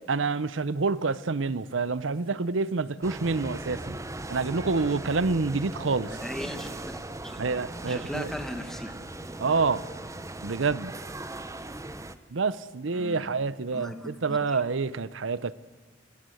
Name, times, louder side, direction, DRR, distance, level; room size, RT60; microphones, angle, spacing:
voice 1, 0.1-4.0 4.3-6.1 7.4-8.3 9.4-9.8 10.4-10.9 12.3-15.5, right 4 dB, 80° right, 17 dB, 0.7 m, -27 dB
sound 1, 3.0-12.1, right 2 dB, 15° right, 0.8 m, -39 dB
voice 2, 6.0-6.7 7.2-7.4 7.9-8.9 12.9-13.3 13.7-14.6, equal, ahead, 6 dB, 1.9 m, -38 dB
27.0 x 20.5 x 7.9 m, 1.4 s
head